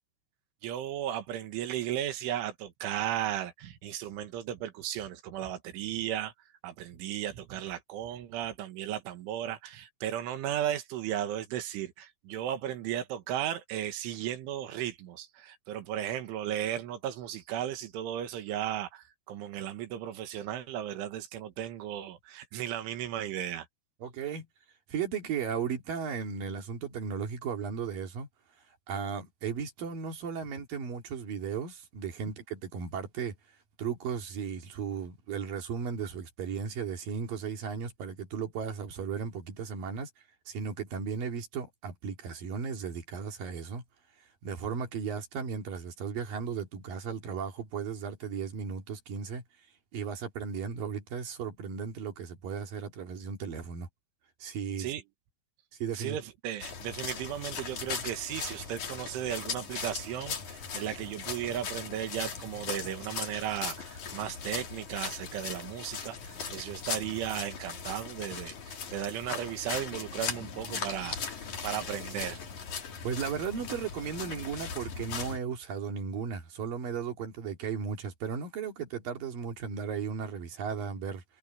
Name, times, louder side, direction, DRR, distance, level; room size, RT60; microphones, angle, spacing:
voice 1, 0.6-6.3 6.6-23.7 54.8-55.0 55.9-72.4, right 11 dB, 80° right, 4.1 m, -35 dB
voice 2, 24.0-24.5 24.9-28.3 28.9-33.3 33.8-40.1 40.5-43.8 44.4-49.4 49.9-53.9 54.4-54.9 55.8-56.2 73.0-81.2, right 6 dB, 50° right, 3.8 m, -35 dB
sound 1, 56.6-75.4, left 6 dB, 45° left, 3.8 m, -39 dB
omnidirectional pair, 5.6 m